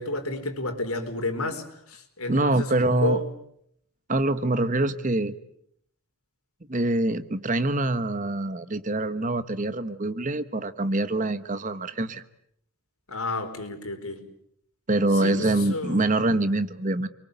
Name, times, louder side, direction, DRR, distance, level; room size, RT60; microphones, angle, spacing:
voice 1, 0.0-3.2 13.1-14.2 15.1-16.0, left 2 dB, 80° left, 5 dB, 4.6 m, -31 dB
voice 2, 2.3-3.2 4.1-5.3 6.7-12.2 14.9-17.1, right 2 dB, 35° right, 12 dB, 1.2 m, -25 dB
29.5 x 23.5 x 8.1 m, 0.70 s
head